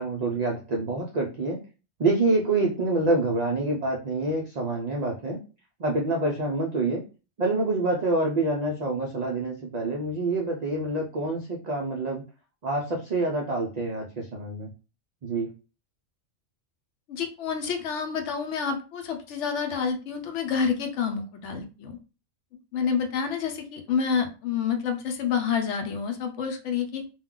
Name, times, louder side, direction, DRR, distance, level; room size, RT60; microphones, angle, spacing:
voice 1, 0.0-1.6 2.0-5.4 5.8-7.0 7.4-12.2 12.6-14.7 15.2-15.5, right 2 dB, 70° right, -1 dB, 0.4 m, -26 dB
voice 2, 17.1-22.0 22.7-27.0, left 6 dB, 70° left, 6 dB, 0.9 m, -28 dB
2.3 x 2.2 x 3.6 m, 0.33 s
omnidirectional pair, 1.4 m